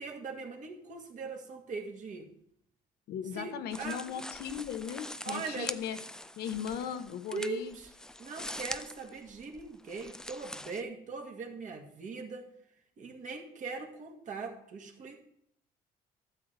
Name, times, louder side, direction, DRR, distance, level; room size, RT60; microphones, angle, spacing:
voice 1, 0.0-2.3 3.3-4.0 5.2-5.7 7.3-7.9 8.2-12.5 13.0-15.2, right 4 dB, 50° right, 2 dB, 1.9 m, -40 dB
voice 2, 3.1-6.0 6.4-7.7, left 8 dB, 75° left, 9 dB, 1.0 m, -37 dB
sound 1, 3.7-10.8, left 1 dB, 5° left, 0.3 m, -44 dB
12.5 x 7.8 x 3.4 m, 0.70 s
cardioid pair, 110°, 17 cm